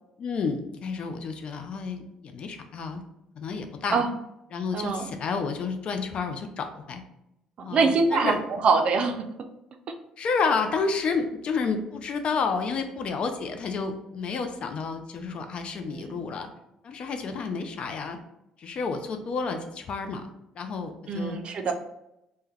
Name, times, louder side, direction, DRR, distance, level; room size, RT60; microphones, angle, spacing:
voice 1, 0.2-3.0 3.4-4.0 4.5-7.0 7.6-8.4 10.2-16.5 16.8-18.2 18.6-20.3 20.6-21.4, left 4 dB, 50° left, 6 dB, 0.4 m, -30 dB
voice 2, 4.7-5.1 7.7-9.3 15.9-16.2 21.1-21.7, right 4 dB, 50° right, 6 dB, 0.4 m, -24 dB
2.2 x 2.1 x 3.2 m, 0.86 s
hypercardioid pair, 60°, 2 cm